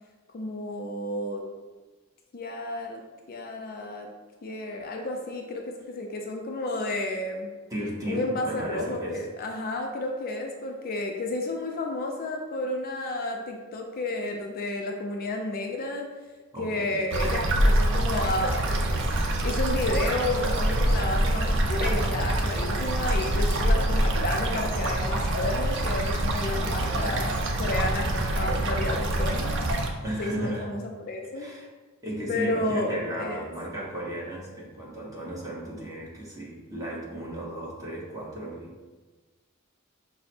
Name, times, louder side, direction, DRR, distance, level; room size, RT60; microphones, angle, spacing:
voice 1, 0.3-1.4 2.3-3.0 3.3-4.1 4.4-7.5 8.0-16.1 16.6-18.8 19.4-29.6 30.2-31.5 32.3-33.5, left 2 dB, 45° left, 2 dB, 0.5 m, -31 dB
voice 2, 7.7-9.2 16.5-17.0 26.5-27.2 30.0-30.7 31.4-31.7 32.0-38.9, right 1 dB, 15° right, -5 dB, 1.0 m, -35 dB
sound 1, 17.1-29.9, right 1 dB, 60° right, 0.6 m, -25 dB
5.7 x 2.0 x 4.2 m, 1.3 s
head